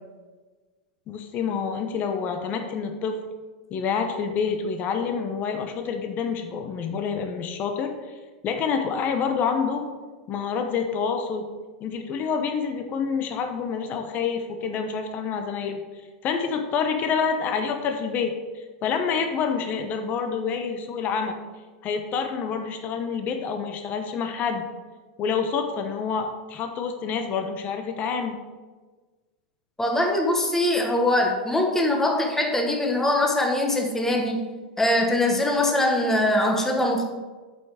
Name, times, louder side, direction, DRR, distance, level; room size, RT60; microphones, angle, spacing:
voice 1, 1.1-3.2 3.7-7.9 8.4-9.9 10.3-11.5 11.8-15.8 16.2-21.4 21.8-24.7 25.2-28.4, left 6 dB, 40° left, 5 dB, 1.0 m, -27 dB
voice 2, 29.8-34.4 34.8-37.1, left 1 dB, 10° left, 2 dB, 1.3 m, -22 dB
7.7 x 5.5 x 4.9 m, 1.3 s
hypercardioid pair, 115°, 5 cm